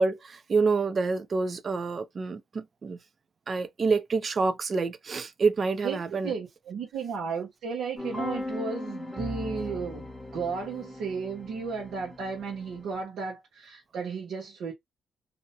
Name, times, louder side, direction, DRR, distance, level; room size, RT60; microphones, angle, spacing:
voice 1, 0.0-3.0 3.5-6.3, right 4 dB, 45° right, 0.5 m, -27 dB
voice 2, 5.8-10.1 10.3-14.7, right 5 dB, 85° right, 1.0 m, -34 dB
sound 1, 8.0-12.9, left 1 dB, 5° left, 0.8 m, -38 dB
2.7 x 2.2 x 2.8 m
cardioid pair, 100°, 0 cm